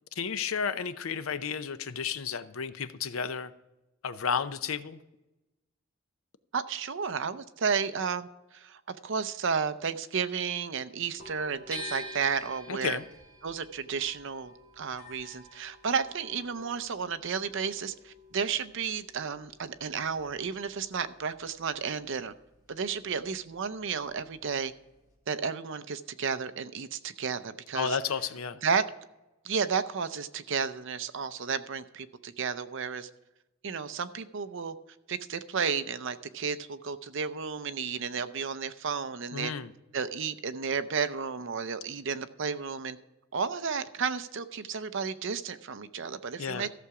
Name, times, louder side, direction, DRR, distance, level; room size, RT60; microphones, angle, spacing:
voice 1, 0.2-3.5 4.0-5.0 12.7-13.0 27.7-28.6 39.3-39.7 46.4-46.7, left 6 dB, 80° left, 13 dB, 0.6 m, -32 dB
voice 2, 6.5-8.3 8.5-13.0 13.4-22.3 22.7-24.7 25.3-28.0 28.6-28.8 29.4-33.1 33.6-34.8 35.1-39.5 39.9-43.0 43.3-46.7, right 6 dB, 65° right, 12 dB, 0.6 m, -32 dB
sound 1, 11.1-25.1, left 2 dB, 45° left, 4.1 m, -56 dB
sound 2, 11.7-17.7 18.0-19.3, right 1 dB, 5° left, 2.9 m, -45 dB
14.5 x 6.9 x 4.8 m, 0.99 s
head